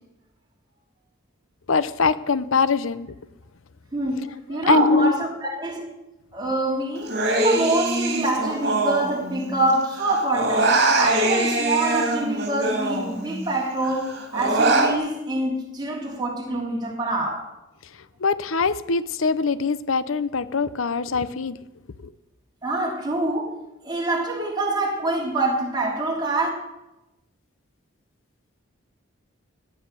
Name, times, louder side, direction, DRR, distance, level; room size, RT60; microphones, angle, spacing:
voice 1, 1.7-3.1 4.7-5.1 18.2-21.6, left 4 dB, 75° left, 16 dB, 0.7 m, -22 dB
voice 2, 3.9-5.8 6.3-7.2 7.4-17.5 22.6-23.5 23.8-26.5, right 2 dB, 20° right, -1 dB, 3.4 m, -25 dB
Human voice, 7.1-9.7 10.0-13.5 13.8-14.9, right 2 dB, 50° right, 2.8 m, -23 dB
17.0 x 10.0 x 6.8 m, 0.96 s
head